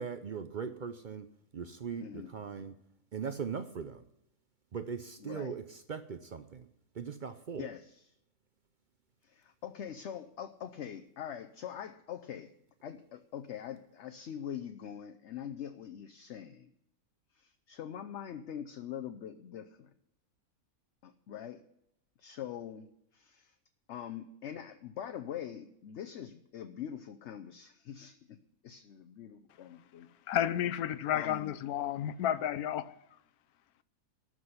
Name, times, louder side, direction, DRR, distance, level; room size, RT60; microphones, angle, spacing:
voice 1, 0.0-2.7 3.1-4.1 4.7-6.7 6.9-7.7, right 6 dB, 55° right, 0.5 m, -40 dB
voice 2, 2.0-2.3 5.2-5.5 7.6-8.0 9.2-12.5 12.8-16.7 17.3-19.9 21.0-21.6 22.2-23.5 23.9-28.4 28.6-30.1 31.1-31.5, left 9 dB, 60° left, 0.8 m, -43 dB
voice 3, 30.3-33.0, left 11 dB, 85° left, 1.1 m, -31 dB
12.5 x 6.1 x 9.5 m
omnidirectional pair, 1.5 m